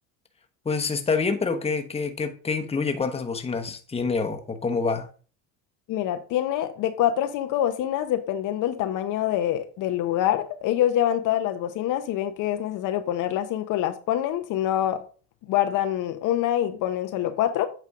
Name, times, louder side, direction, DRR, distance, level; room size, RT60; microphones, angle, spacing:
voice 1, 0.6-5.1, left 4 dB, 15° left, 1.0 m, -27 dB
voice 2, 5.9-15.0 15.5-17.7, left 11 dB, 60° left, 0.8 m, -25 dB
8.4 x 3.4 x 4.8 m
supercardioid pair, 95°, 36 cm